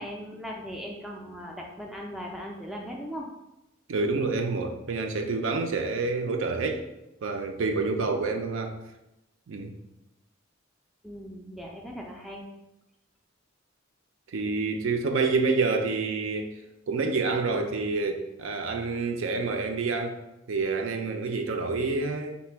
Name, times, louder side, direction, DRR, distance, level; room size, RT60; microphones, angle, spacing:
voice 1, 0.0-3.3 11.0-12.5, equal, ahead, -1 dB, 0.3 m, -38 dB
voice 2, 3.9-6.8 7.2-8.8 9.5-9.7 14.3-16.6 16.9-20.2 20.5-22.3, right 3 dB, 65° right, 5 dB, 0.4 m, -28 dB
4.0 x 2.2 x 4.4 m, 0.93 s
head